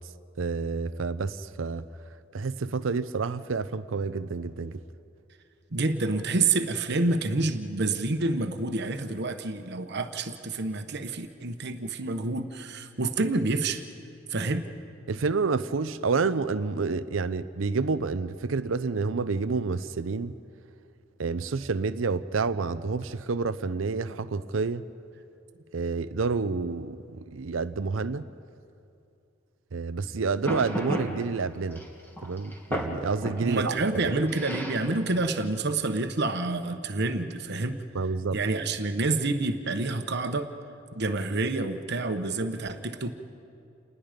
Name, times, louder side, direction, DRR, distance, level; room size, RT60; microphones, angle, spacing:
voice 1, 0.4-1.8 2.3-4.8 15.1-20.3 21.2-24.8 25.7-28.3 29.7-31.8 32.2-34.1 37.9-38.4, right 4 dB, 90° right, 0.6 m, -29 dB
voice 2, 5.7-13.8 14.3-14.7 33.4-37.8 38.3-40.5 40.9-43.1, right 3 dB, 60° right, 1.1 m, -28 dB
sound 1, 30.4-31.3 31.7-33.5 34.3-35.3, equal, 10° left, 2.3 m, -33 dB
29.0 x 20.0 x 5.1 m
head